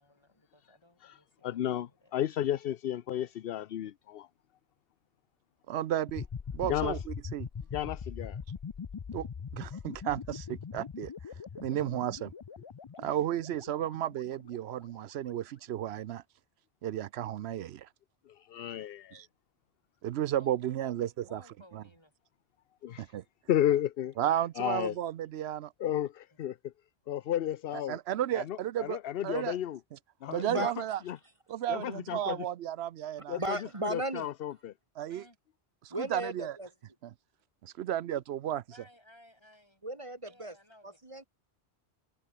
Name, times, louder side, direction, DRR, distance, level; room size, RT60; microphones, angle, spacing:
voice 1, 0.0-2.1 20.4-20.5 20.8-22.1 26.3-26.4 35.1-35.4 38.7-39.8 40.2-41.3, left 1 dB, 25° left, 6.1 m, -59 dB
voice 2, 1.4-4.3 6.7-7.0 7.7-8.4 18.3-19.2 22.8-23.1 23.5-24.1 24.6-24.9 25.8-26.7 27.1-28.0 28.4-29.8 30.2-30.7 31.1-31.2 31.7-32.4 33.3-34.7, left 11 dB, 65° left, 0.8 m, -33 dB
voice 3, 5.7-6.3 6.5-7.5 9.1-9.3 9.5-12.3 13.0-16.2 16.8-17.9 19.1-19.3 20.0-21.4 21.7-21.8 23.0-23.2 24.2-25.7 27.7-29.0 29.2-29.6 29.9-30.0 30.3-31.0 31.5-33.4 35.0-35.2 35.8-36.6 37.0-37.1 37.6-38.6, right 11 dB, 80° right, 0.9 m, -33 dB
sound 1, 6.1-15.0, left 6 dB, 40° left, 0.4 m, -42 dB
voice 4, 30.3-30.7 33.4-34.3 35.9-36.7 39.8-40.5 40.8-41.2, right 1 dB, 30° right, 1.7 m, -35 dB
omnidirectional pair, 1.1 m